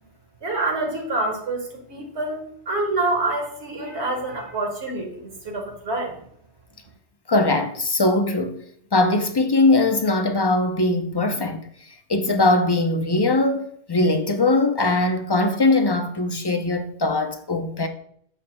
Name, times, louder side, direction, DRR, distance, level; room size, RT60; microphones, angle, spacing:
voice 1, 0.4-6.2, right 2 dB, 70° right, 1.8 m, -27 dB
voice 2, 7.3-8.6 8.9-11.7 12.1-17.9, left 2 dB, 35° left, 0.4 m, -21 dB
8.4 x 7.3 x 2.2 m
omnidirectional pair, 1.2 m